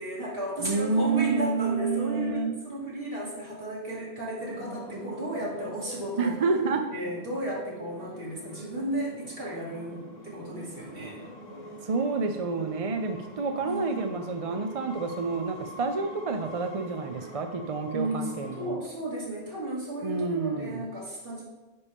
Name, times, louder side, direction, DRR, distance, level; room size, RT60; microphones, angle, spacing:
voice 1, 0.0-6.3 6.9-11.2 13.6-14.1 17.9-21.4, right 1 dB, 60° right, -5 dB, 2.5 m, -34 dB
voice 2, 0.6-2.5 6.2-6.8 11.8-18.8 20.0-20.8, right 4 dB, 45° right, 5 dB, 0.5 m, -29 dB
sound 1, 4.4-18.7, equal, 45° left, 1.3 m, -45 dB
9.6 x 5.5 x 3.5 m, 1.1 s
omnidirectional pair, 1.1 m